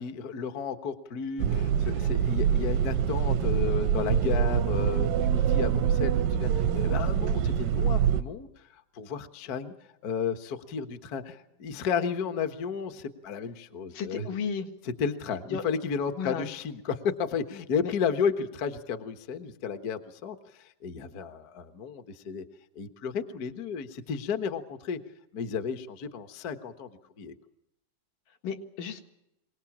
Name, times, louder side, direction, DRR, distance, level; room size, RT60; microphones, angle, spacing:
voice 1, 0.0-9.7 10.0-14.4 15.0-22.4 22.7-25.0 25.3-26.9 27.2-27.3, left 6 dB, 55° left, 8 dB, 1.0 m, -33 dB
sound 1, 1.4-8.2, right 8 dB, 85° right, 2.7 m, -25 dB
voice 2, 13.9-14.7 15.5-15.6 16.2-16.5 28.4-29.0, left 6 dB, 80° left, 6 dB, 3.3 m, -33 dB
24.5 x 19.0 x 7.3 m, 0.82 s
omnidirectional pair, 3.8 m